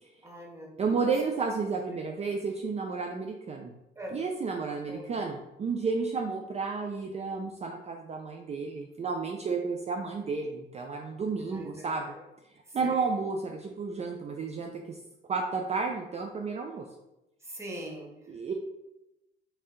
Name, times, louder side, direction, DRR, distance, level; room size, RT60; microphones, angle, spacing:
voice 1, 0.2-1.1 1.9-2.2 3.9-4.2 4.9-5.1 11.4-12.2 12.7-13.1 17.4-18.3, right 1 dB, 15° right, -1 dB, 0.9 m, -43 dB
voice 2, 0.8-3.7 4.1-12.1 12.7-15.0 15.3-16.9 18.3-18.5, right 4 dB, 35° right, 2 dB, 0.4 m, -32 dB
3.3 x 2.6 x 3.7 m, 0.91 s
cardioid pair, 90°, 20 cm